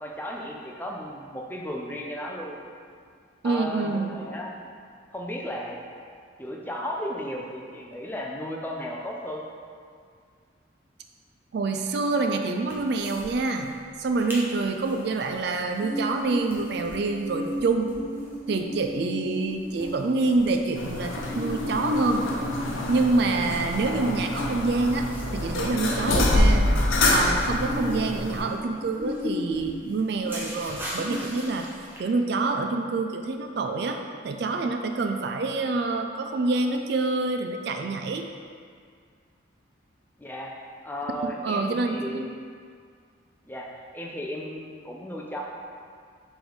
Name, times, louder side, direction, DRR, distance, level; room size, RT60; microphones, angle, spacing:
voice 1, 0.0-2.6 3.4-4.6 5.1-5.8 6.4-9.4 40.2-40.5 40.8-42.3 43.4-45.4, equal, 10° left, -1 dB, 0.5 m, -35 dB
voice 2, 3.4-4.1 11.5-17.9 18.5-22.3 22.9-25.1 25.3-26.7 27.1-31.7 32.0-38.3 41.4-42.3, right 3 dB, 55° right, 4 dB, 0.4 m, -26 dB
sound 1, 12.7-13.3 13.6-13.7 14.0-14.4 14.8-32.0, left 1 dB, 10° right, 0.9 m, -35 dB
sound 2, 20.7-28.4, left 1 dB, 90° left, 0.8 m, -26 dB
4.9 x 3.8 x 5.0 m, 2.1 s
head